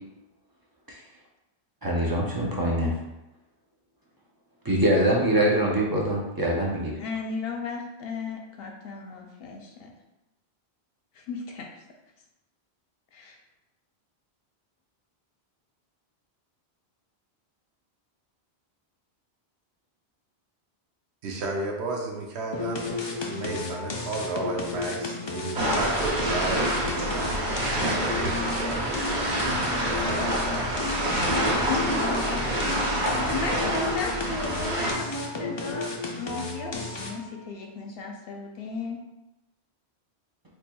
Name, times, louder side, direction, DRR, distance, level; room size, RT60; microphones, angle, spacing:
voice 1, 1.8-2.9 4.6-7.0, right 1 dB, 30° right, -3 dB, 0.4 m, -24 dB
voice 2, 7.0-9.9 11.1-11.7 13.1-13.4 31.7-32.4 33.0-35.9 36.2-39.0, left 4 dB, 70° left, 1 dB, 0.7 m, -34 dB
voice 3, 21.2-22.8 23.3-27.3 28.0-31.8, right 3 dB, 85° right, 1 dB, 0.9 m, -33 dB
sound 1, 22.5-37.3, left 4 dB, 45° left, 0.3 m, -33 dB
sound 2, 25.5-34.9, right 1 dB, 50° right, 0.9 m, -27 dB
4.2 x 3.1 x 2.2 m, 0.96 s
omnidirectional pair, 1.1 m